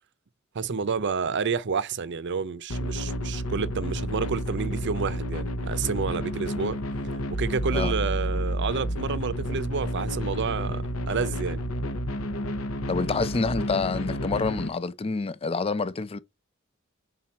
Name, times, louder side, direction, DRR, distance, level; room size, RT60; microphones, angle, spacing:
voice 1, 0.5-6.8 7.3-11.6, right 5 dB, 55° right, 0.6 m, -29 dB
sound 1, 2.7-14.7, equal, 75° left, 0.9 m, -30 dB
voice 2, 12.9-16.2, left 4 dB, 25° left, 0.5 m, -27 dB
5.9 x 3.9 x 4.1 m
head